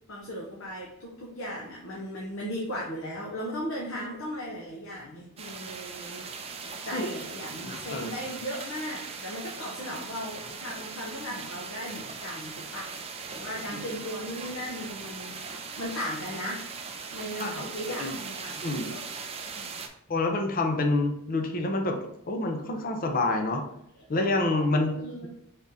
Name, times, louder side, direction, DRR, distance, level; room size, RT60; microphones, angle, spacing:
voice 1, 0.1-6.3 6.6-16.6 17.1-19.0 19.5-19.8 24.5-24.7 24.9-25.3, equal, 65° left, -3 dB, 0.9 m, -37 dB
sound 1, 5.4-19.9, right 5 dB, 30° right, 0.4 m, -39 dB
voice 2, 7.6-8.1 17.4-18.2 18.6-18.9 20.1-22.0 22.3-23.6 24.1-25.0, left 2 dB, 40° left, 4 dB, 0.6 m, -27 dB
3.6 x 3.5 x 4.2 m, 0.75 s
head